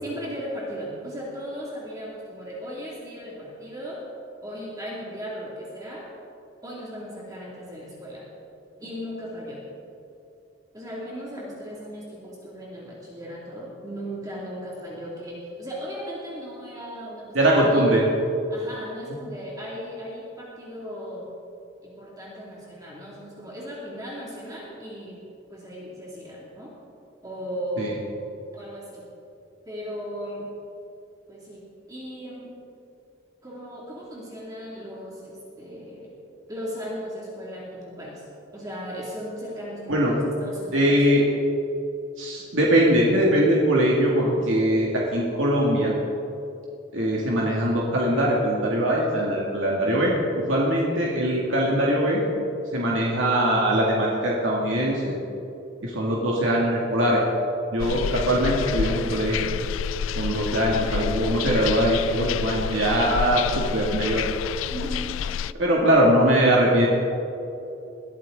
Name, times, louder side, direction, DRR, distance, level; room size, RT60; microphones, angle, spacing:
voice 1, 0.0-4.0 4.4-6.0 6.6-8.3 8.8-9.6 10.7-17.9 18.5-21.3 21.8-25.2 25.5-26.7 27.2-28.0 28.5-29.1 29.7-30.5 31.3-31.6 31.9-32.6 33.4-36.1 36.5-38.2 38.5-41.2 64.7-65.1, equal, 20° right, -5 dB, 2.5 m, -36 dB
voice 2, 17.3-18.0 27.8-27.9 39.9-40.1 40.7-41.2 42.2-45.9 46.9-50.1 50.5-52.2 52.7-55.2 55.8-57.2 57.7-59.5 60.2-64.2 65.6-66.9, right 1 dB, 80° right, -4 dB, 2.4 m, -21 dB
sound 1, 57.8-65.5, left 7 dB, 85° left, 0.4 m, -29 dB
21.5 x 14.0 x 3.9 m, 2.8 s
head